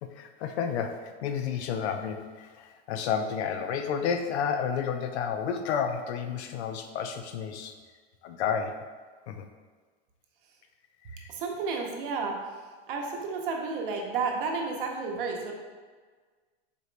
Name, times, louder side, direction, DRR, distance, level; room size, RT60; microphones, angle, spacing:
voice 1, 0.0-7.7 8.2-8.8 9.3-9.4 11.1-11.3, left 7 dB, 85° left, 6 dB, 0.6 m, -31 dB
voice 2, 11.3-12.4 12.9-15.5, right 4 dB, 55° right, 1 dB, 0.7 m, -31 dB
4.2 x 3.0 x 3.2 m, 1.5 s
supercardioid pair, 170°, 32 cm